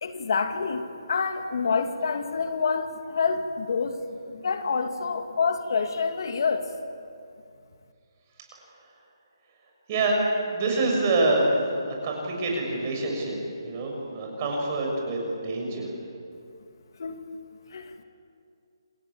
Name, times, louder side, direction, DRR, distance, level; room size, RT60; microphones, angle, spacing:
voice 1, 0.0-4.0 4.3-6.6 17.0-17.2 17.7-18.0, left 5 dB, 55° left, 7 dB, 2.3 m, -27 dB
voice 2, 9.9-10.2 10.5-11.5 11.9-13.4 13.6-15.9, right 2 dB, 30° right, 0 dB, 6.9 m, -26 dB
28.0 x 20.0 x 8.7 m, 2.4 s
hypercardioid pair, 160°, 3 cm